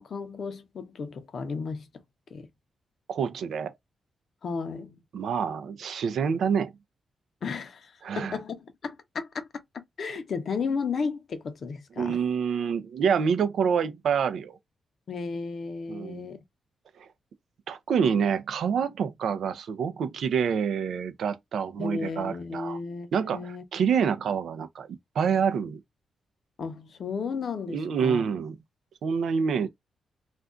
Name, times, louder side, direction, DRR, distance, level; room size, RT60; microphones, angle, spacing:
voice 1, 0.0-1.9 2.3-2.5 4.4-5.0 7.4-9.5 9.7-12.2 15.1-16.4 21.8-23.6 26.6-28.2, left 5 dB, 55° left, 0.6 m, -34 dB
voice 2, 3.1-3.7 5.1-6.7 8.0-8.4 12.0-14.6 15.9-16.3 17.0-17.1 17.7-22.8 23.1-25.8 27.7-28.6 29.0-29.7, right 6 dB, 75° right, 0.4 m, -27 dB
2.5 x 2.2 x 3.6 m
cardioid pair, 125°, 0 cm